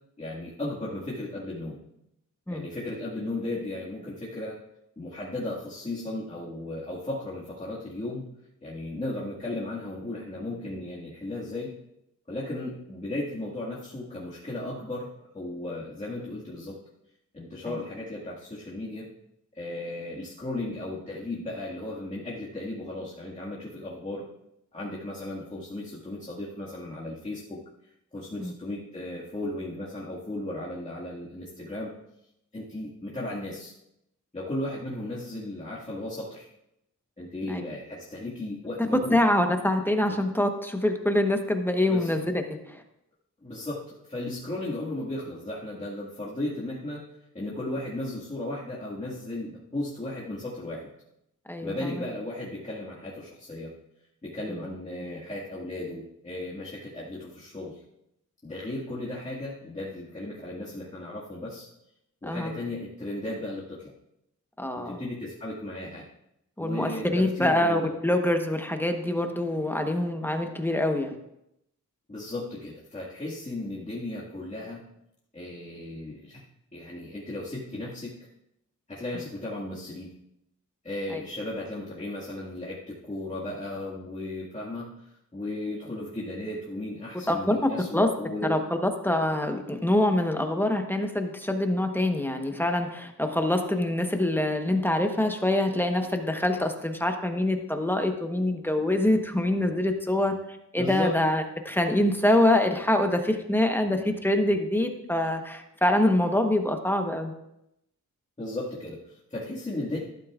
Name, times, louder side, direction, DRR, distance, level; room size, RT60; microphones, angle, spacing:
voice 1, 0.2-1.8 2.5-4.6 5.0-8.2 8.6-11.7 12.3-15.1 15.3-16.8 17.3-19.1 19.5-24.2 24.7-27.6 28.1-31.9 32.5-33.7 34.3-36.5 37.2-39.2 40.1-40.2 41.9-42.1 43.4-47.0 47.3-50.9 51.6-53.7 54.2-57.8 58.4-61.7 62.2-63.9 64.8-66.0 66.6-67.9 72.1-74.8 75.3-76.4 76.7-78.1 78.9-80.1 80.8-84.9 85.3-88.6 100.8-101.2 108.4-110.0, left 1 dB, 20° left, -7 dB, 1.9 m, -35 dB
voice 2, 39.1-42.8 51.5-52.0 54.5-54.6 62.2-62.5 64.6-65.0 66.6-71.2 81.1-81.2 87.3-87.6 87.9-88.1 88.5-100.3 100.7-107.3, left 1 dB, 5° left, 5 dB, 1.1 m, -25 dB
12.5 x 11.5 x 2.4 m, 0.83 s
wide cardioid pair, 80°, 32 cm